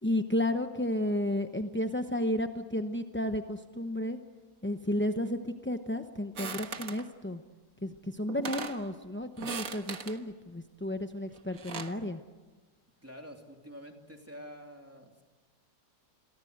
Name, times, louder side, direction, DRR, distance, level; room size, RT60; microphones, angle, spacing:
voice 1, 0.0-4.2 4.6-7.4 7.8-12.2, left 1 dB, 15° left, 6 dB, 0.5 m, -32 dB
sound 1, 6.4-7.1 8.0-8.1 8.3-8.8 9.4-10.2 11.3-12.0, right 5 dB, 55° right, 1.8 m, -39 dB
voice 2, 13.0-15.2, equal, 10° right, 3 dB, 2.8 m, -47 dB
29.0 x 23.0 x 8.0 m, 1.3 s
omnidirectional pair, 1.9 m